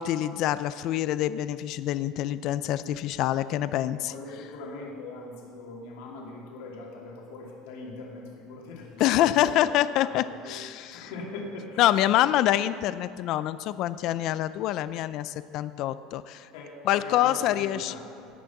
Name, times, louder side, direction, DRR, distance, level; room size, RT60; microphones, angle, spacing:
voice 1, 0.0-4.1 9.0-11.1 11.8-16.5 16.8-17.9, left 13 dB, 50° left, 15 dB, 0.4 m, -26 dB
voice 2, 3.9-9.3 10.0-10.2 10.4-11.8 16.5-18.0, left 3 dB, 75° left, -2 dB, 2.6 m, -41 dB
17.0 x 6.4 x 5.9 m, 2.3 s
cardioid pair, 155°, 0 cm